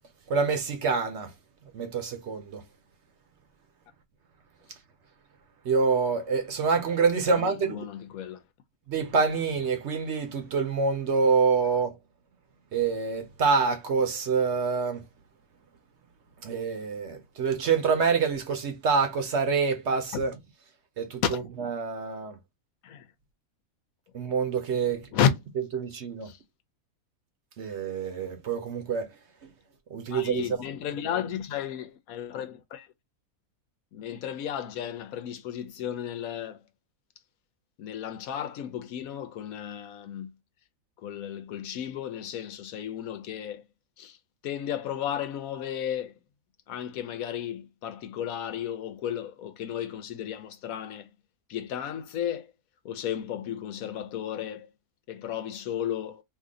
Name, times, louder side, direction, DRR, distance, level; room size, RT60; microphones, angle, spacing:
voice 1, 0.3-1.3 1.7-2.6 5.6-7.9 8.9-11.9 12.7-15.0 16.4-20.3 21.0-21.2 21.6-22.4 24.1-25.1 25.7-26.3 27.6-29.1 29.9-30.4, right 5 dB, 60° right, 0.9 m, -26 dB
voice 2, 7.2-8.4 20.1-20.2 21.2-21.5 22.8-23.1 25.1-25.3 26.2-26.4 30.1-32.9 33.9-36.6 37.8-40.3 41.0-43.6 44.0-44.2 44.4-46.2 46.7-51.1 51.5-52.5 52.8-54.7 55.1-56.2, left 9 dB, 80° left, 1.1 m, -33 dB
2.7 x 2.6 x 3.6 m
omnidirectional pair, 1.5 m